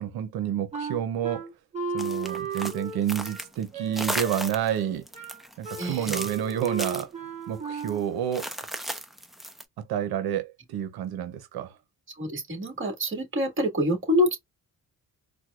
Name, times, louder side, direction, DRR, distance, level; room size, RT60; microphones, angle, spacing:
voice 1, 0.0-1.5 1.9-5.0 5.6-8.5 9.8-11.8, right 10 dB, 90° right, 0.8 m, -29 dB
Wind instrument woodwind instrument, 0.7-8.2, right 5 dB, 20° right, 2.0 m, -35 dB
sound 1, 2.0-3.6 3.9-4.8 5.1-7.0 7.8-7.9 8.3-9.6, equal, ahead, 0.7 m, -35 dB
voice 2, 5.8-6.2 12.2-14.4, left 1 dB, 35° right, 1.9 m, -26 dB
4.5 x 2.3 x 2.4 m
cardioid pair, 110°, 36 cm